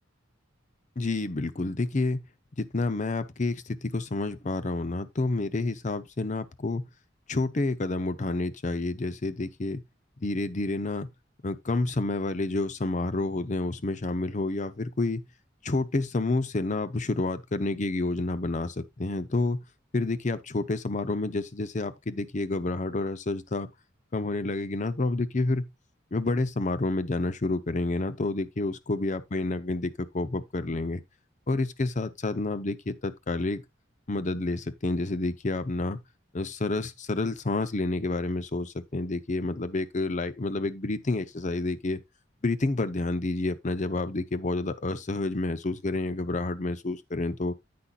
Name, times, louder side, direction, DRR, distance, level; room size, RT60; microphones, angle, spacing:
voice 1, 1.0-2.2 2.6-6.8 7.3-9.8 10.2-11.1 11.4-15.2 15.6-19.6 19.9-23.7 24.1-25.7 26.1-31.0 31.5-33.6 34.1-36.0 36.3-42.0 42.4-47.5, left 2 dB, 40° left, 0.7 m, -29 dB
9.8 x 8.6 x 2.4 m
head